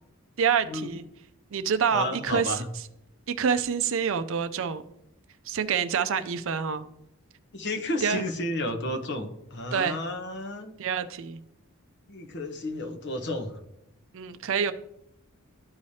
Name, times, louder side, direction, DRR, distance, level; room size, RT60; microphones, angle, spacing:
voice 1, 0.4-1.0 1.5-2.6 3.3-4.8 5.5-6.9 8.0-8.2 9.7-10.0 10.8-11.4 14.1-14.7, right 7 dB, 60° right, 11 dB, 0.5 m, -27 dB
voice 2, 1.9-2.7 7.5-10.7 12.1-13.6, left 1 dB, 50° left, 5 dB, 0.9 m, -32 dB
13.5 x 4.9 x 2.8 m, 0.82 s
head